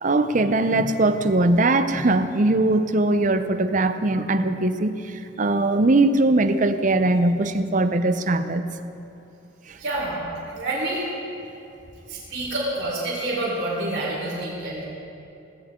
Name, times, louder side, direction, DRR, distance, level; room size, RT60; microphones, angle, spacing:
voice 1, 0.0-8.7 9.7-9.8, right 2 dB, 40° right, 10 dB, 0.6 m, -21 dB
voice 2, 9.8-10.2 10.5-11.0 12.1-14.8, right 2 dB, 65° right, -6 dB, 4.4 m, -28 dB
18.5 x 17.5 x 3.7 m, 2.7 s
head